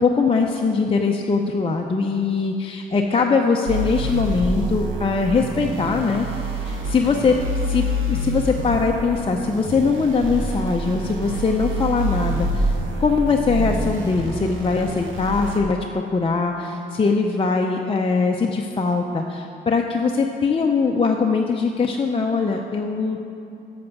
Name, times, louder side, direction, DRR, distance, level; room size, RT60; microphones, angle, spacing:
voice 1, 0.0-6.3 6.6-7.4 7.7-23.2, left 4 dB, 25° left, 1 dB, 0.6 m, -21 dB
sound 1, 3.7-15.6, right 1 dB, 80° right, 1.4 m, -27 dB
7.6 x 6.8 x 7.0 m, 2.7 s
cardioid pair, 90°, 20 cm